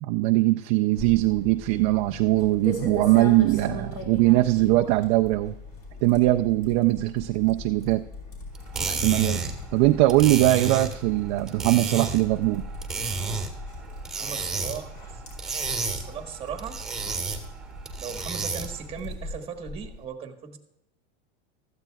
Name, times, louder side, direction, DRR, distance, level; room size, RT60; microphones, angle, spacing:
voice 1, 0.0-5.5 6.0-8.0 8.8-9.4 9.7-12.6, right 18 dB, 35° right, 6 dB, 0.4 m, -21 dB
sound 1, 0.9-20.0, left 2 dB, 45° left, 4.4 m, -40 dB
sound 2, 8.5-18.9, right 4 dB, ahead, 1.6 m, -32 dB
voice 2, 14.1-15.2 15.8-16.8 18.0-20.6, right 7 dB, 15° right, 5 dB, 1.3 m, -38 dB
16.0 x 13.5 x 2.3 m, 0.87 s
supercardioid pair, 150°, 34 cm